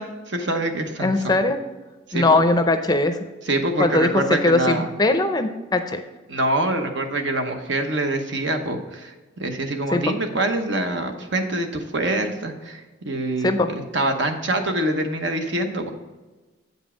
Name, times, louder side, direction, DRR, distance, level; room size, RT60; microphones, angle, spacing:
voice 1, 0.0-1.3 2.1-2.4 3.4-4.9 6.3-9.1 9.4-12.8 13.0-15.9, right 1 dB, 70° right, 5 dB, 1.0 m, -25 dB
voice 2, 1.0-1.6 2.1-3.2 3.8-6.0 9.9-10.0 13.4-13.7, left 2 dB, 20° left, 7 dB, 0.5 m, -20 dB
8.2 x 5.4 x 5.0 m, 1.2 s
head